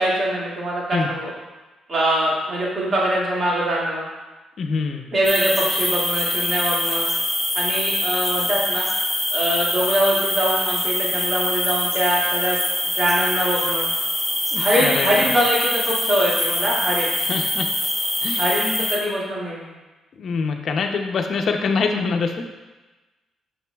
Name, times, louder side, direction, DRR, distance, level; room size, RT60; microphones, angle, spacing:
voice 1, 0.0-1.3 1.9-4.1 5.1-7.0 7.5-8.9 9.3-12.6 13.0-13.9 14.6-17.1 18.4-19.7, right 1 dB, 50° right, -5 dB, 2.0 m, -23 dB
voice 2, 4.6-5.1 14.5-15.3 17.3-17.7 18.2-18.4 20.2-22.4, left 4 dB, 55° left, 4 dB, 0.6 m, -24 dB
sound 1, 5.2-19.0, left 1 dB, 5° left, 1.5 m, -24 dB
6.9 x 5.9 x 2.3 m, 1.2 s
cardioid pair, 90°, 0 cm